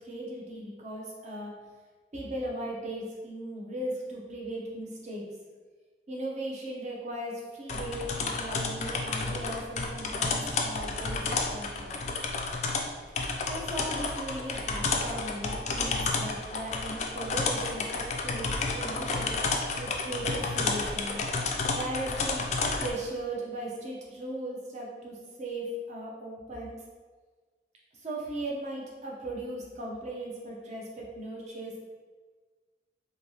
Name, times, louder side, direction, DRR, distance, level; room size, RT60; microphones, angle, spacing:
voice 1, 0.0-1.5 2.1-5.2 6.1-11.9 13.5-19.4 19.8-21.2 21.7-22.5 22.8-26.8 27.9-31.8, right 1 dB, 40° right, -3 dB, 0.7 m, -37 dB
sound 1, 7.7-22.9, left 3 dB, 40° left, 0.3 m, -31 dB
3.2 x 2.7 x 2.7 m, 1.4 s
head